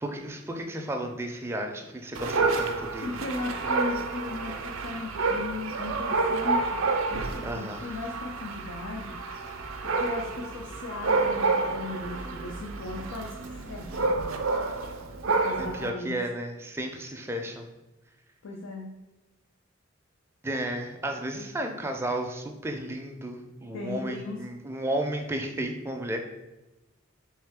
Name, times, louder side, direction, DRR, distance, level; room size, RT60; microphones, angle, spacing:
voice 1, 0.0-3.2 7.4-7.9 15.6-17.7 20.4-26.2, right 1 dB, 10° right, 3 dB, 0.4 m, -33 dB
Dog, 2.1-15.9, right 3 dB, 75° right, 0.4 m, -29 dB
voice 2, 3.0-6.8 7.1-9.5 9.8-14.4 15.2-16.2 18.4-18.9 23.7-24.4, left 3 dB, 85° left, 0 dB, 0.5 m, -37 dB
3.5 x 3.2 x 3.5 m, 1.0 s
head